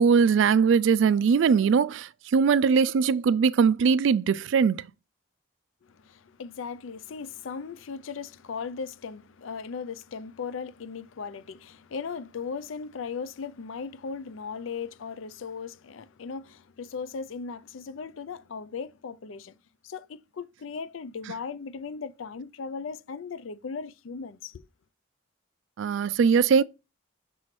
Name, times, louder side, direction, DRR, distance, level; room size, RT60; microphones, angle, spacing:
voice 1, 0.0-4.9 25.8-26.6, right 6 dB, 70° right, 0.3 m, -21 dB
voice 2, 5.8-19.6 19.8-24.7, left 5 dB, 80° left, 0.4 m, -37 dB
6.1 x 3.2 x 5.8 m
head